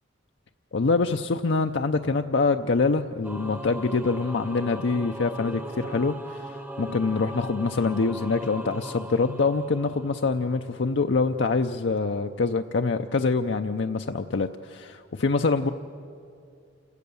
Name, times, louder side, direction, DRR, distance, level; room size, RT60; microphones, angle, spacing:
voice 1, 0.7-15.7, left 4 dB, 65° left, 5 dB, 0.6 m, -25 dB
Singing / Musical instrument, 3.2-10.7, equal, 10° right, 0.8 m, -39 dB
28.5 x 16.5 x 7.0 m, 2.5 s
head